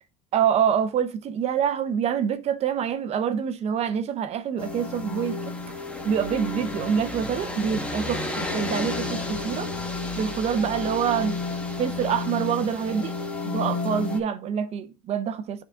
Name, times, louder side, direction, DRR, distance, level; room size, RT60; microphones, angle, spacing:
voice 1, 0.3-5.5 6.0-9.7 10.2-11.4 11.8-15.6, right 8 dB, 40° right, 0.7 m, -26 dB
sound 1, 4.6-14.2, left 3 dB, 5° left, 1.0 m, -31 dB
9.1 x 3.8 x 3.4 m
supercardioid pair, 125°, 17 cm